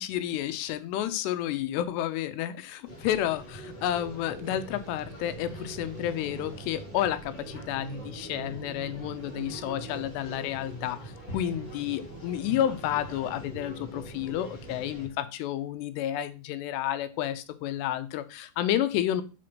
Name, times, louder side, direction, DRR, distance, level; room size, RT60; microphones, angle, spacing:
voice 1, 0.0-19.2, left 11 dB, 80° left, 12 dB, 2.7 m, -31 dB
sound 1, 2.8-15.1, right 1 dB, 40° left, 1.5 m, -43 dB
Musical instrument, 4.1-15.7, right 7 dB, 85° right, 1.8 m, -51 dB
6.0 x 5.1 x 6.3 m, 0.32 s
omnidirectional pair, 5.1 m